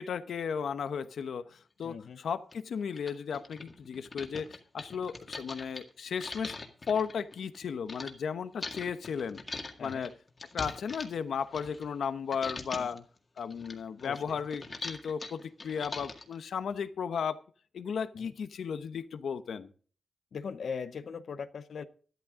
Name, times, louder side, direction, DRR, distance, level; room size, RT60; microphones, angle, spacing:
voice 1, 0.0-6.6 6.9-9.4 9.8-10.1 10.5-13.0 13.4-17.4 17.7-19.7, left 6 dB, 85° left, 1.0 m, -35 dB
voice 2, 1.8-2.2 9.8-10.1 12.7-13.0 14.0-14.2 18.1-18.3 20.3-21.9, left 6 dB, 65° left, 0.8 m, -40 dB
sound 1, 1.8-1.9 2.5-2.6 2.9-8.1 8.6-12.1 12.3-13.0 13.4-16.4, left 3 dB, 30° left, 2.0 m, -42 dB
13.5 x 12.5 x 3.8 m
wide cardioid pair, 175°, 0 cm